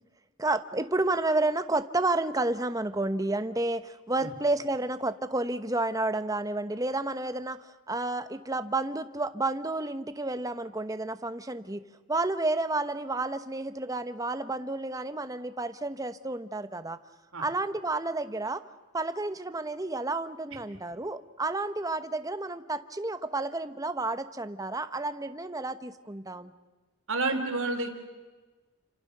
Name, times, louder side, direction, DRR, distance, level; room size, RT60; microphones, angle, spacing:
voice 1, 0.4-11.8 12.1-17.0 17.4-18.6 18.9-26.5, right 2 dB, 15° right, 11 dB, 0.9 m, -31 dB
voice 2, 27.1-27.9, right 3 dB, 65° right, 5 dB, 3.4 m, -29 dB
30.0 x 26.5 x 6.7 m, 1.3 s
head